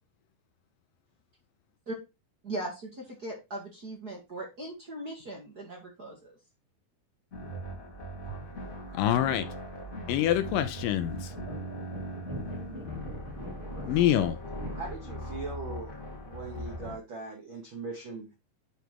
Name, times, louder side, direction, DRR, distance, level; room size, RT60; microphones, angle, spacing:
voice 1, 2.4-6.3, right 1 dB, 40° right, 1.4 m, -39 dB
sound 1, 7.3-16.9, equal, 30° left, 1.7 m, -40 dB
voice 2, 8.9-9.5 10.1-11.3 13.9-14.4, left 12 dB, 80° left, 2.1 m, -26 dB
sound 2, 11.3-16.7, equal, 20° right, 0.8 m, -43 dB
voice 3, 14.7-15.9 16.2-18.4, right 3 dB, 65° right, 1.2 m, -40 dB
10.0 x 3.5 x 4.6 m
omnidirectional pair, 4.2 m